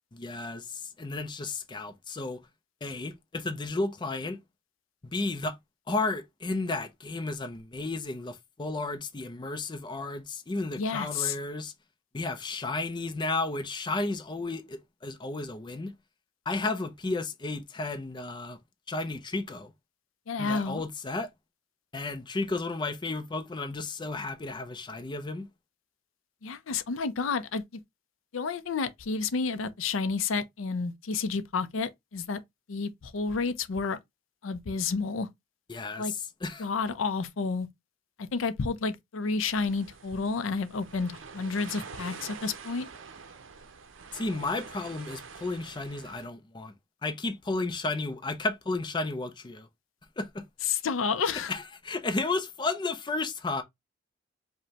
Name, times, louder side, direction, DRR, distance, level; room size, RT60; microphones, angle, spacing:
voice 1, 0.1-2.4 2.8-4.4 5.0-5.6 5.9-11.7 12.1-15.9 16.5-18.6 18.9-19.7 20.4-21.3 21.9-25.5 35.7-36.7 44.1-46.7 47.0-49.7 50.2-50.5 51.5-53.6, left 3 dB, 25° left, 0.5 m, -33 dB
voice 2, 10.8-11.4 20.3-20.8 26.4-27.6 28.3-32.4 32.7-34.0 34.4-35.3 36.0-36.1 36.6-37.7 38.2-42.9 50.6-51.5, left 4 dB, 80° left, 0.5 m, -30 dB
sound 1, 39.4-46.3, right 5 dB, 70° right, 0.6 m, -46 dB
5.0 x 2.2 x 2.8 m
head